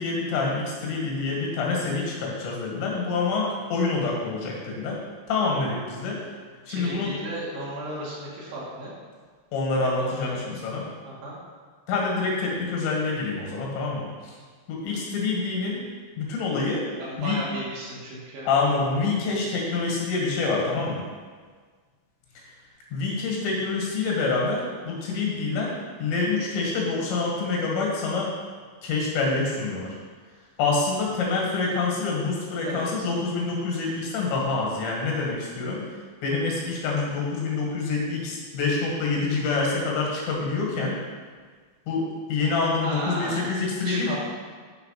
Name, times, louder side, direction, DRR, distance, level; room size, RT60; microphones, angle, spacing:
voice 1, 0.0-5.0 5.3-6.2 6.7-7.1 9.5-10.8 11.9-14.4 14.7-15.8 16.2-16.9 17.2-17.4 18.5-21.0 22.9-28.3 28.8-29.9 30.6-35.8 36.2-41.0 41.9-44.2, left 3 dB, 85° left, -2 dB, 4.3 m, -26 dB
voice 2, 6.7-8.9 10.0-10.5 11.0-11.4 17.0-18.5 32.6-33.1 42.8-44.2, right 1 dB, 70° right, -6 dB, 4.4 m, -35 dB
9.5 x 5.8 x 5.8 m, 1.6 s
omnidirectional pair, 5.0 m